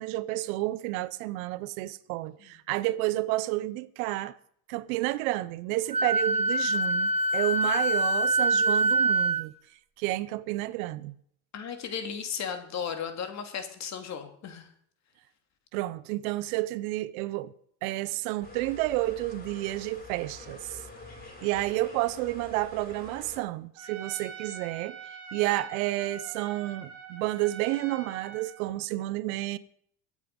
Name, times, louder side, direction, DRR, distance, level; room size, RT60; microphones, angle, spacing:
voice 1, 0.0-4.4 4.7-9.5 10.0-11.1 15.7-17.5 17.8-20.8 21.4-29.6, right 17 dB, 80° right, 1.0 m, -30 dB
Wind instrument woodwind instrument, 5.9-9.4, right 1 dB, 15° right, 0.6 m, -25 dB
voice 2, 11.5-14.7, left 7 dB, 40° left, 2.7 m, -35 dB
sound 1, 18.4-23.4, left 3 dB, 20° left, 6.1 m, -46 dB
Trumpet, 23.7-28.6, right 6 dB, 40° right, 5.6 m, -44 dB
23.0 x 8.3 x 5.3 m
cardioid pair, 135°, 42 cm